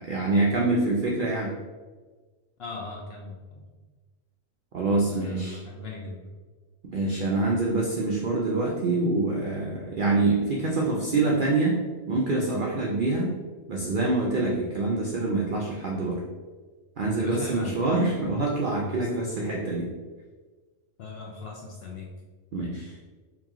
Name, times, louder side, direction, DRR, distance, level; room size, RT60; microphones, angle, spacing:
voice 1, 0.0-1.5 4.7-5.6 6.9-11.8 12.1-13.3 13.7-16.2 17.0-19.9 22.5-22.9, right 2 dB, 70° right, -2 dB, 0.5 m, -25 dB
voice 2, 2.6-3.6 5.0-6.3 17.2-17.8 18.8-19.1 21.0-22.1, left 3 dB, 65° left, -1 dB, 0.6 m, -39 dB
2.9 x 2.9 x 3.6 m, 1.4 s
omnidirectional pair, 1.4 m